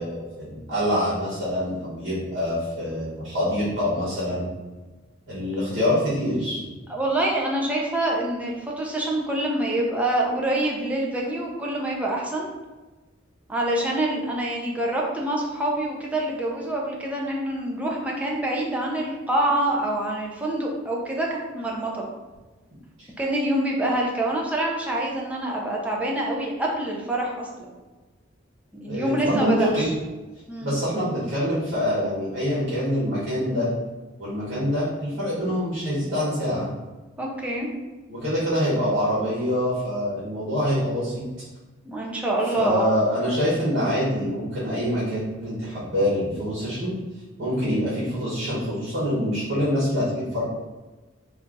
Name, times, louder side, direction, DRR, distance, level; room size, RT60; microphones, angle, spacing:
voice 1, 0.0-4.5 5.3-6.6 28.9-29.9 30.6-33.7 34.2-36.7 38.1-41.2 42.6-46.9 47.4-50.4, equal, 60° right, -9 dB, 1.5 m, -25 dB
voice 2, 6.9-12.5 13.5-22.0 23.2-27.7 28.7-29.9 30.5-30.8 37.2-37.7 41.8-42.9, right 1 dB, 5° right, -2 dB, 0.6 m, -26 dB
3.3 x 2.7 x 3.8 m, 1.2 s
head